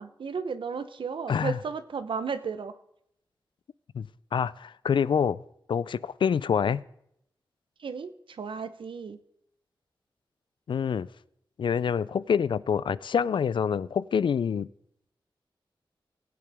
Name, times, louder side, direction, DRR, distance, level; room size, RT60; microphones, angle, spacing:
voice 1, 0.0-2.7 7.8-9.2, right 5 dB, 80° right, 11 dB, 0.8 m, -34 dB
voice 2, 3.9-5.4 5.7-6.8 10.7-11.1 11.6-14.7, left 7 dB, 70° left, 19 dB, 0.3 m, -26 dB
19.5 x 8.6 x 3.5 m, 0.75 s
wide cardioid pair, 95°, 9 cm